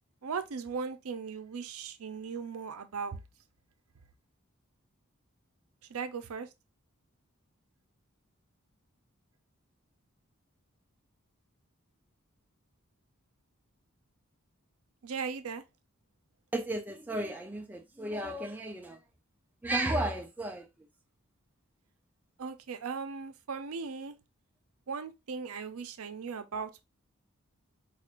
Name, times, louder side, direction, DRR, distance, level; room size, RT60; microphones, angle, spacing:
voice 1, 0.2-3.2 5.9-6.5 15.0-15.6 22.4-24.2 24.9-26.8, right 5 dB, 80° right, 0.6 m, -38 dB
voice 2, 16.5-19.0 19.6-20.7, right 1 dB, 10° right, 0.3 m, -33 dB
4.1 x 2.4 x 2.9 m
head